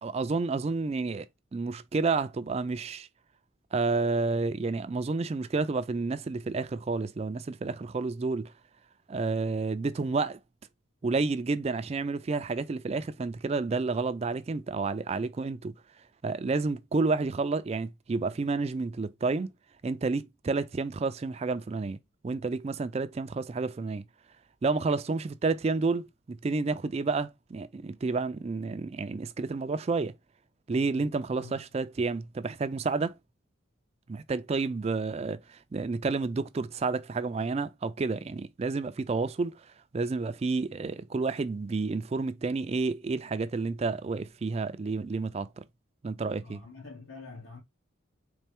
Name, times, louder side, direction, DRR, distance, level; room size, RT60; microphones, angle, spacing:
voice 1, 0.0-3.1 3.7-8.5 9.1-10.4 11.0-15.7 16.2-19.5 19.8-22.0 22.2-24.0 24.6-30.1 30.7-33.1 34.1-45.6 46.0-46.6, right 3 dB, 30° right, 0.3 m, -30 dB
voice 2, 30.9-31.7 46.4-47.6, left 3 dB, 80° left, 2.1 m, -46 dB
4.2 x 3.2 x 3.4 m
head